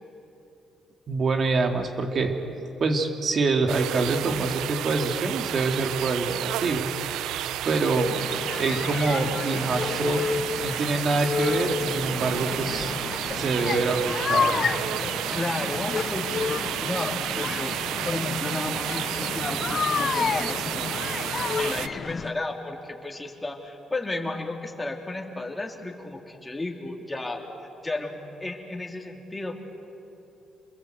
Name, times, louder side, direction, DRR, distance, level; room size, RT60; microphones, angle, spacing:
voice 1, 1.1-2.4 2.8-6.9 7.6-8.1 8.6-10.3 10.6-12.9 13.3-14.7, right 3 dB, 50° right, 4 dB, 2.6 m, -25 dB
sound 1, 3.7-21.9, right 12 dB, 90° right, 0.5 m, -31 dB
sound 2, 8.0-22.3, left 6 dB, 45° left, 0.7 m, -30 dB
voice 2, 15.3-16.2 16.8-17.8 18.0-20.9 21.6-27.4 27.8-29.6, left 2 dB, 15° left, 1 dB, 3.2 m, -33 dB
28.0 x 21.5 x 8.0 m, 2.9 s
cardioid pair, 90°, 0 cm